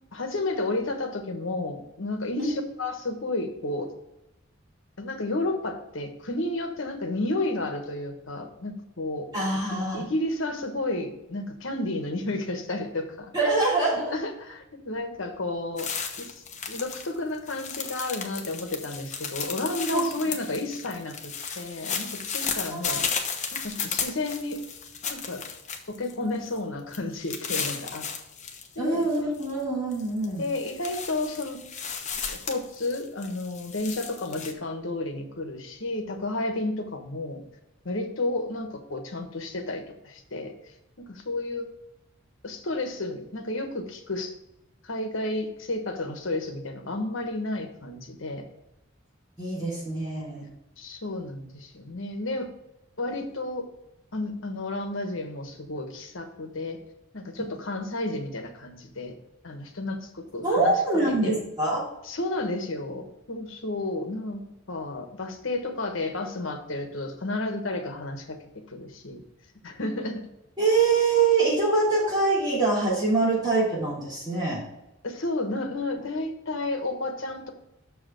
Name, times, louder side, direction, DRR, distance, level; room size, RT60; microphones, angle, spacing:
voice 1, 0.1-3.9 5.0-13.3 14.1-15.9 16.2-16.3 16.7-23.0 23.5-24.6 25.0-25.4 25.9-28.1 28.7-29.1 30.4-31.6 32.3-37.4 37.8-40.5 41.0-41.7 42.4-44.3 44.8-48.5 50.8-52.5 53.0-53.7 54.1-56.8 57.1-59.1 59.4-60.7 61.1-61.3 62.0-68.4 68.7-69.2 69.6-70.2 75.0-77.5, left 2 dB, 70° left, 5 dB, 1.2 m, -32 dB
voice 2, 9.3-10.1 13.3-14.1 19.9-20.0 22.7-23.0 28.8-30.4 49.4-50.5 60.4-61.8 70.6-74.6, right 3 dB, 20° right, -8 dB, 3.0 m, -24 dB
sound 1, 15.8-17.1 17.3-26.1 26.5-26.6 26.9-28.7 29.0-29.5 29.9-34.5, left 6 dB, 35° left, 1.0 m, -34 dB
6.8 x 4.9 x 6.4 m, 0.88 s
head